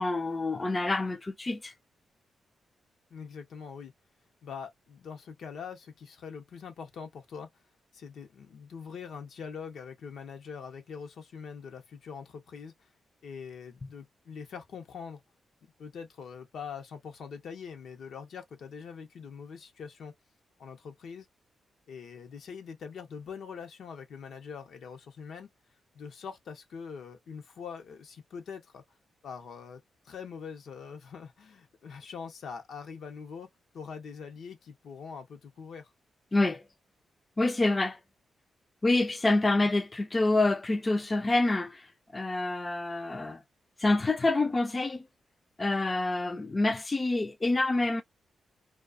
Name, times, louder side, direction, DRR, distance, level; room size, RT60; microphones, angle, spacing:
voice 1, 0.0-1.7 36.3-36.6 37.4-38.0 38.8-43.4 43.8-45.1 45.6-48.0, left 2 dB, 25° left, 0.4 m, -27 dB
voice 2, 3.1-3.9 4.4-7.5 7.9-12.9 13.2-15.2 15.8-20.1 20.6-21.3 21.9-25.5 25.9-28.8 29.2-33.5 33.7-35.9, left 6 dB, 80° left, 0.7 m, -43 dB
2.3 x 2.2 x 2.3 m
cardioid pair, 90°, 0 cm